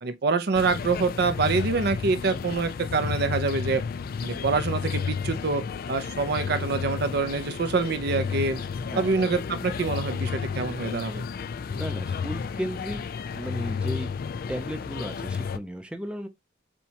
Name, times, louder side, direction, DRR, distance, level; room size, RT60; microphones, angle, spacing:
voice 1, 0.0-3.8 4.2-5.6 5.9-8.6 9.0-11.2, right 4 dB, 60° right, 0.6 m, -26 dB
sound 1, 0.5-15.6, left 6 dB, 50° left, 0.3 m, -32 dB
voice 2, 11.7-13.0 13.3-14.1 14.5-16.3, equal, 5° right, 0.6 m, -34 dB
6.9 x 2.3 x 2.8 m
head